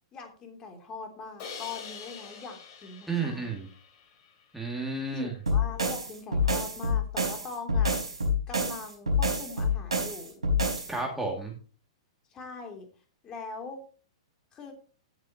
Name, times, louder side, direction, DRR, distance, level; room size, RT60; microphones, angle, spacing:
voice 1, 0.1-3.5 5.1-8.1 8.5-10.4 12.3-12.9 13.2-13.8 14.5-14.7, left 4 dB, 25° left, 3 dB, 3.2 m, -41 dB
Crash cymbal, 1.4-4.5, left 6 dB, 40° left, 3.6 m, -45 dB
voice 2, 3.1-3.7 4.5-5.3 10.9-11.5, right 3 dB, 5° right, -1 dB, 2.5 m, -32 dB
sound 1, 5.5-10.9, left 2 dB, 85° right, 4.5 m, -27 dB
16.5 x 7.8 x 3.0 m, 0.37 s
figure-of-eight pair, 110°, 3 cm